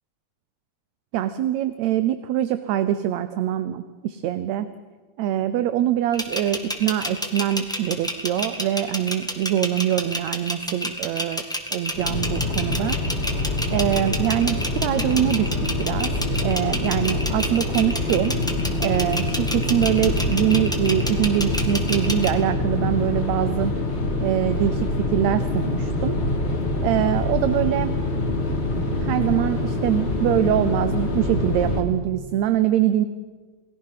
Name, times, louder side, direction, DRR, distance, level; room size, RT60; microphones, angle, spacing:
voice 1, 1.1-4.7 5.2-11.4 11.7-13.0 13.7-16.1 16.4-18.4 18.8-23.8 24.2-26.2 26.8-28.0 29.0-33.1, right 12 dB, 75° right, 12 dB, 1.9 m, -23 dB
sound 1, 6.1-22.3, equal, ahead, 1.1 m, -29 dB
sound 2, 11.9-31.8, left 2 dB, 45° left, 3.5 m, -25 dB
28.5 x 19.5 x 5.8 m, 1.4 s
omnidirectional pair, 3.5 m